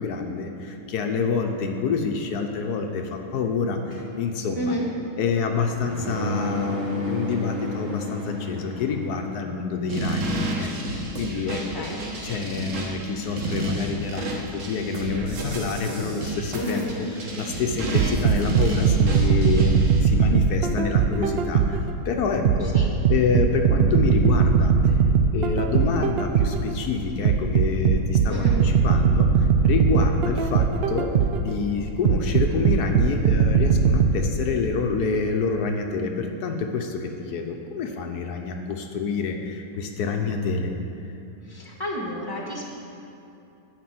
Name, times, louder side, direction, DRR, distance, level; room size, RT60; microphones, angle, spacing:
voice 1, 0.0-4.7 5.2-11.8 12.2-17.1 17.4-22.7 23.1-25.0 25.3-29.3 29.6-31.1 31.4-40.7, left 5 dB, 80° left, 4 dB, 1.3 m, -27 dB
sound 1, 3.9-9.5, left 2 dB, 35° right, 2.9 m, -32 dB
voice 2, 4.5-4.9 11.5-12.0 16.5-16.9 22.6-22.9 28.3-28.6 41.4-42.6, equal, 15° left, -2 dB, 1.5 m, -31 dB
sound 2, 9.9-20.0, right 2 dB, 55° right, 1.6 m, -31 dB
sound 3, 17.9-21.9 22.5-26.7 27.3-31.5 32.1-34.1, right 6 dB, 80° right, 0.5 m, -20 dB
11.0 x 5.0 x 7.7 m, 2.8 s
omnidirectional pair, 1.6 m